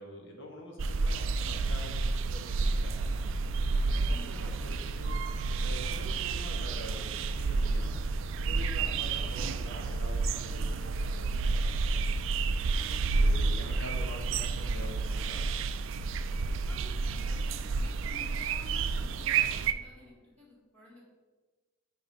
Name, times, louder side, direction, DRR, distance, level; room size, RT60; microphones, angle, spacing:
voice 1, 0.0-3.3 3.8-5.2 5.6-8.0 8.4-12.0 13.1-15.5, equal, 60° left, 1 dB, 1.5 m, -46 dB
sound 1, 0.8-19.7, right 4 dB, 60° right, 0.4 m, -30 dB
voice 2, 4.1-4.5 13.2-13.8 14.1-14.6 16.6-21.0, left 1 dB, 5° left, -7 dB, 2.1 m, -52 dB
6.1 x 5.3 x 5.3 m, 1.3 s
head